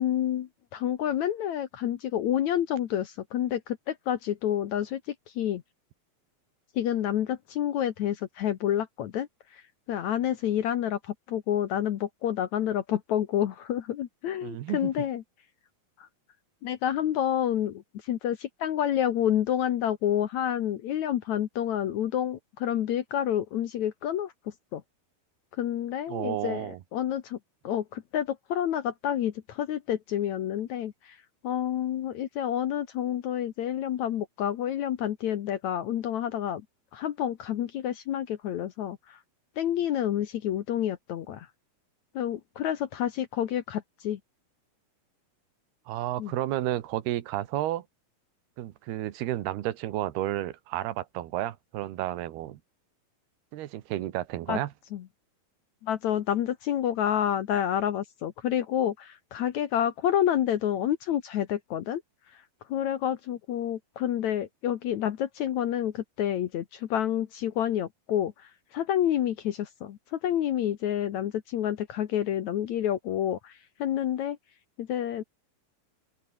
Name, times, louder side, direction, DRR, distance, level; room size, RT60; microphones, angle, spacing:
voice 1, 0.0-5.6 6.8-9.3 9.5-9.6 9.9-15.2 16.0-16.1 16.6-24.3 24.7-24.8 25.6-27.4 27.6-31.2 31.4-36.6 36.9-39.2 39.6-41.5 42.1-44.2 46.2-46.3 54.5-54.6 54.9-55.0 55.8-62.0 62.7-74.4 74.8-75.2, left 10 dB, 65° left, 2.0 m, -29 dB
voice 2, 14.4-14.9 26.1-26.8 45.9-47.8 48.6-52.6 53.5-54.7, right 14 dB, 90° right, 3.3 m, -31 dB
open air
omnidirectional pair, 4.4 m